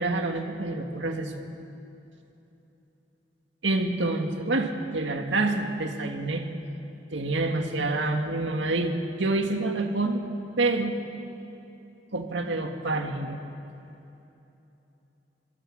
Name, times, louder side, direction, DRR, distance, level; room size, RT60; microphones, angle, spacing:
voice 1, 0.0-1.3 3.6-6.5 7.1-10.2 10.6-11.0 12.1-13.4, right 2 dB, 85° right, 4 dB, 1.9 m, -27 dB
23.0 x 17.0 x 7.5 m, 2.9 s
head